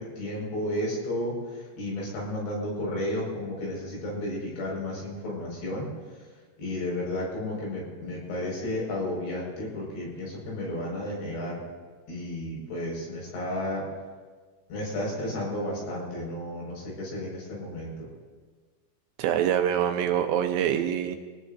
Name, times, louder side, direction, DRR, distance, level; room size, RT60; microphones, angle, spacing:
voice 1, 0.0-5.9 6.6-11.6 12.1-13.8 14.7-18.1, left 1 dB, 75° left, -3 dB, 7.8 m, -32 dB
voice 2, 19.2-21.2, right 10 dB, 80° right, 6 dB, 2.7 m, -25 dB
24.5 x 18.0 x 2.7 m, 1.4 s
omnidirectional pair, 5.3 m